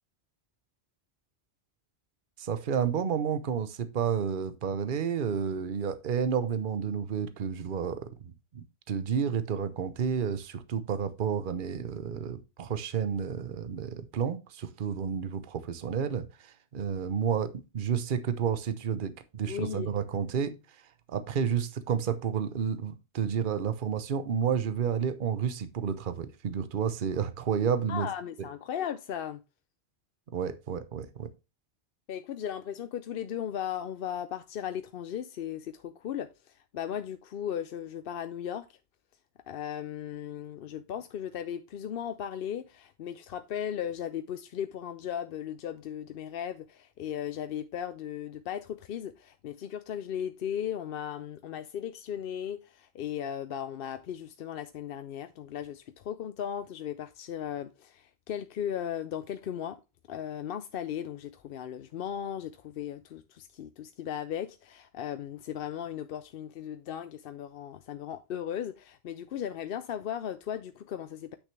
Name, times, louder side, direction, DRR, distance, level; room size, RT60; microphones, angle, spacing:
voice 1, 2.4-20.8 21.1-28.1 28.4-28.5 30.3-31.3, right 7 dB, 55° right, 0.9 m, -31 dB
voice 2, 19.5-19.9 27.9-29.4 32.1-38.7 39.5-59.8 60.1-71.4, left 9 dB, 65° left, 0.7 m, -36 dB
8.3 x 6.3 x 3.3 m
omnidirectional pair, 1.1 m